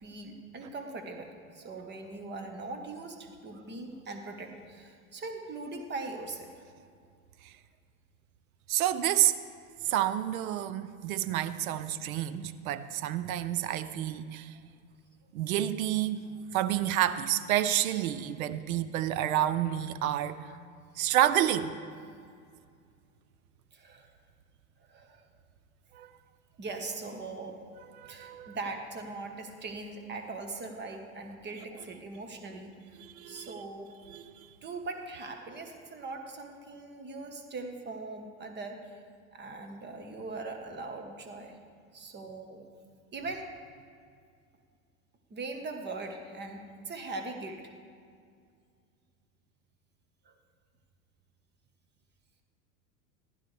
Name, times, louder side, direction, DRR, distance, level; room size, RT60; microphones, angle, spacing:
voice 1, 0.0-6.5 23.7-24.1 24.9-25.2 26.6-27.6 28.1-33.0 33.3-33.9 34.6-39.0 39.3-41.6 41.9-42.6 43.1-43.5 45.3-47.7 50.2-50.3, right 3 dB, 25° right, 5 dB, 1.4 m, -41 dB
voice 2, 8.7-9.4 9.8-14.5 15.3-16.2 16.5-20.4 21.0-21.8 25.9-26.1 28.0-28.6 33.0-33.6 34.1-34.2, right 12 dB, 70° right, 13 dB, 0.7 m, -29 dB
15.0 x 11.5 x 3.4 m, 2.2 s
hypercardioid pair, 100°, 43 cm